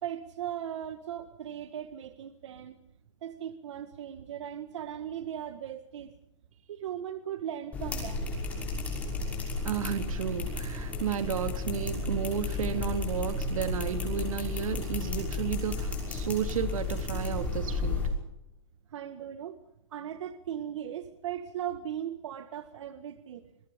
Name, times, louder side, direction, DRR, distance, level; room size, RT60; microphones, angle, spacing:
voice 1, 0.0-2.7 3.2-6.1 6.7-8.3 18.9-19.6 19.9-23.5, right 10 dB, 60° right, 10 dB, 1.8 m, -38 dB
sound 1, 7.7-18.1, left 3 dB, 10° left, 6.0 m, -33 dB
voice 2, 9.6-18.1, right 8 dB, 85° right, 9 dB, 3.0 m, -33 dB
28.0 x 22.5 x 5.3 m, 0.81 s
supercardioid pair, 175°, 17 cm